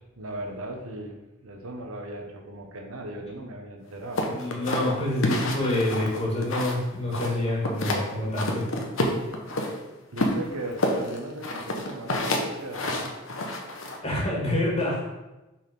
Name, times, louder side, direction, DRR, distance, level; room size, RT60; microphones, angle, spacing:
voice 1, 0.2-4.2 10.1-13.0 13.3-13.4, right 1 dB, 75° right, 3 dB, 1.0 m, -37 dB
sound 1, 4.2-6.8 7.1-8.0 8.4-9.7 10.2-14.0, left 1 dB, 65° left, 1.1 m, -28 dB
voice 2, 4.3-8.7 14.0-15.0, left 1 dB, 30° left, -4 dB, 2.1 m, -27 dB
5.9 x 4.3 x 5.4 m, 1.1 s
head